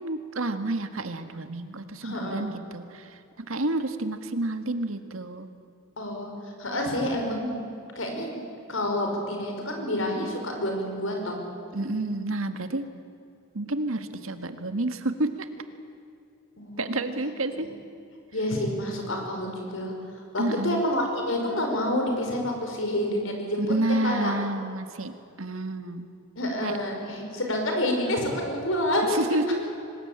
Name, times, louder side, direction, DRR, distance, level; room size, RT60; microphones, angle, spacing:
voice 1, 0.0-3.2 3.5-5.5 11.7-12.9 13.5-15.5 16.8-17.7 20.4-20.9 23.6-25.1 25.4-26.1 26.6-26.7 29.1-29.7, right 2 dB, 80° right, 9 dB, 1.7 m, -29 dB
voice 2, 2.0-2.5 6.0-6.3 6.6-7.6 8.0-8.4 8.7-11.4 16.6-17.0 17.5-17.6 18.3-19.9 20.3-24.3 26.4-29.2, left 1 dB, 70° left, 2 dB, 5.5 m, -28 dB
25.0 x 20.0 x 8.8 m, 2.6 s
head